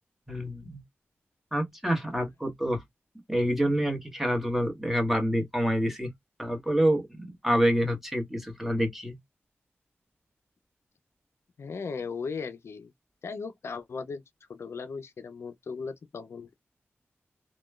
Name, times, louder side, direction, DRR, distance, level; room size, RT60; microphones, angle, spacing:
voice 1, 0.3-0.8 1.5-2.8 3.3-6.1 6.4-9.2, equal, 5° right, 1.1 m, -27 dB
voice 2, 11.6-12.9 13.2-14.2 14.5-16.5, left 5 dB, 75° left, 0.4 m, -37 dB
2.9 x 2.1 x 2.2 m
cardioid pair, 60°, 5 cm